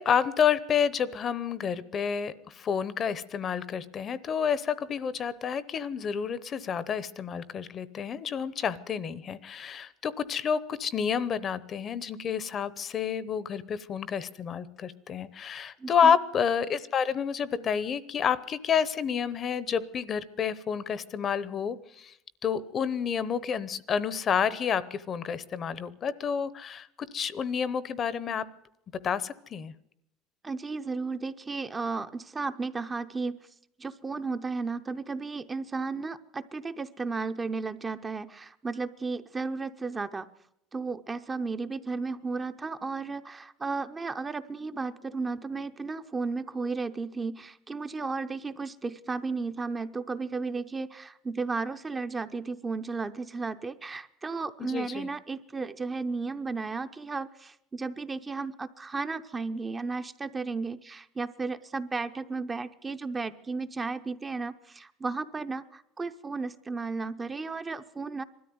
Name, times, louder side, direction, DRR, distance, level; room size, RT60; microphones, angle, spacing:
voice 1, 0.0-22.1 22.4-28.4 29.0-29.7 54.6-55.1, left 7 dB, 30° left, 18 dB, 0.8 m, -29 dB
voice 2, 15.8-16.1 30.4-33.4 33.8-40.3 40.7-68.2, right 4 dB, 15° right, 9 dB, 0.7 m, -34 dB
20.5 x 13.5 x 9.4 m, 0.81 s
cardioid pair, 160°, 0 cm